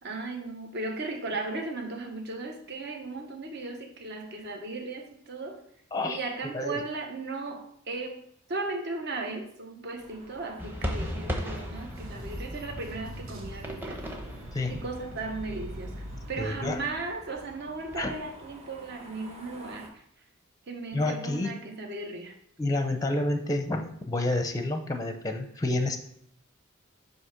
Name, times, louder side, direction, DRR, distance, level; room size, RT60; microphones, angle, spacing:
voice 1, 0.0-5.6 6.1-14.0 14.7-20.0 20.7-22.3, right 3 dB, 50° right, 3 dB, 1.1 m, -36 dB
sound 1, 10.0-19.9, right 1 dB, 30° right, 1.2 m, -52 dB
sound 2, 10.6-18.5, equal, 10° right, 0.9 m, -39 dB
sound 3, 11.9-16.9, equal, 75° right, 1.3 m, -42 dB
voice 2, 14.5-14.8 16.4-16.8 18.0-18.1 20.9-21.6 22.6-26.0, left 2 dB, 15° left, 5 dB, 0.6 m, -29 dB
8.0 x 2.9 x 5.9 m, 0.70 s
head